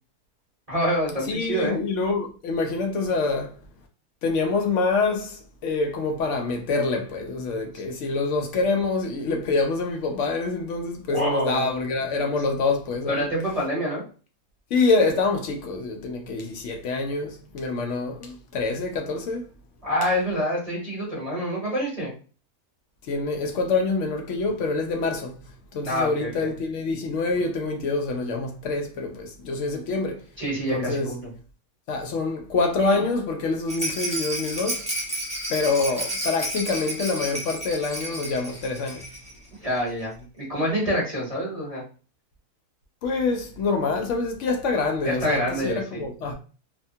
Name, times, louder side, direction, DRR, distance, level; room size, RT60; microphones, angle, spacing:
voice 1, 0.7-1.8 11.1-11.7 13.1-14.0 19.8-22.1 25.8-26.5 30.4-31.3 32.9-33.0 39.6-41.8 45.0-46.0, equal, 25° right, 1.0 m, -26 dB
voice 2, 1.3-3.5 4.2-13.2 14.7-19.4 23.1-25.3 25.7-30.2 30.7-31.1 31.9-34.8 35.5-39.1 43.0-46.3, left 3 dB, 65° left, 0.7 m, -26 dB
Rattle, 33.7-39.4 39.6-39.7 40.0-40.1, right 1 dB, 5° right, 0.5 m, -31 dB
2.7 x 2.2 x 2.6 m
omnidirectional pair, 1.7 m